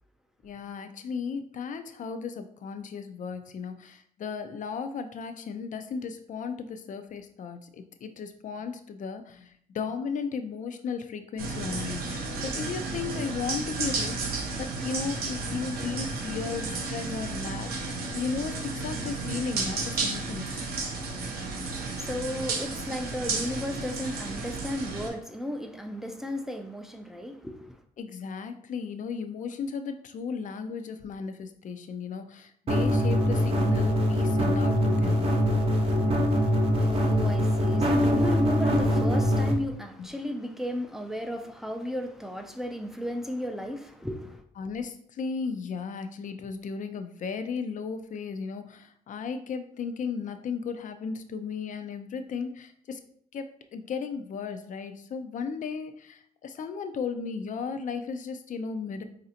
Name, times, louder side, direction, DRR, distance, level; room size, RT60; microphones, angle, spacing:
voice 1, 0.4-14.2 14.6-20.6 28.0-35.3 40.0-40.1 44.6-53.0 53.3-59.0, left 5 dB, 55° left, 0.4 m, -35 dB
sound 1, 11.4-25.1, right 3 dB, 90° right, 0.7 m, -33 dB
voice 2, 20.9-27.8 36.3-44.4, equal, 5° right, 0.4 m, -35 dB
sound 2, 32.7-39.5, equal, 40° right, 0.7 m, -23 dB
4.0 x 2.6 x 2.7 m
cardioid pair, 85°, 16 cm